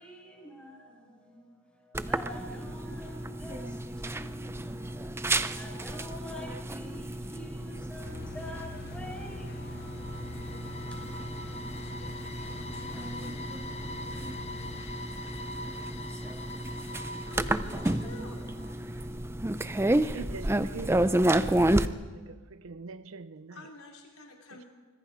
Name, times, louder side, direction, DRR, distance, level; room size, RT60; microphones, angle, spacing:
voice 1, 0.0-11.6, left 1 dB, 5° left, 5.4 m, -47 dB
sound 1, 1.9-21.9, right 1 dB, 10° right, 0.6 m, -31 dB
sound 2, 8.0-14.8, left 3 dB, 45° left, 0.6 m, -46 dB
sound 3, 9.0-19.0, left 1 dB, 30° left, 1.1 m, -44 dB
voice 2, 17.3-18.5 23.5-24.7, left 2 dB, 75° left, 4.0 m, -47 dB
voice 3, 20.0-23.7 24.5-24.6, right 4 dB, 65° right, 0.6 m, -44 dB
26.0 x 24.0 x 5.1 m
head